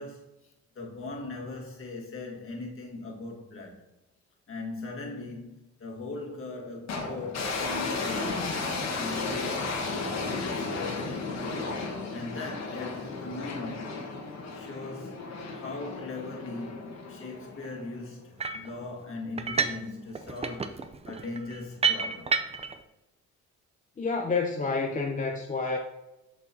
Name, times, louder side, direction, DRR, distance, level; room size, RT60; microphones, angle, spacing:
voice 1, 0.0-3.8 4.5-8.6 9.0-9.9 10.1-11.4 12.1-14.2 14.5-15.2 15.5-22.4, left 3 dB, 45° left, 1.7 m, -40 dB
sound 1, 6.9-18.1, left 3 dB, 60° left, 1.4 m, -34 dB
sound 2, 18.4-18.7 19.4-19.9 20.2-22.8, right 5 dB, 20° right, 0.5 m, -29 dB
voice 2, 24.0-25.8, left 4 dB, 25° left, 0.6 m, -29 dB
6.8 x 6.0 x 2.8 m
cardioid pair, 90°, 30 cm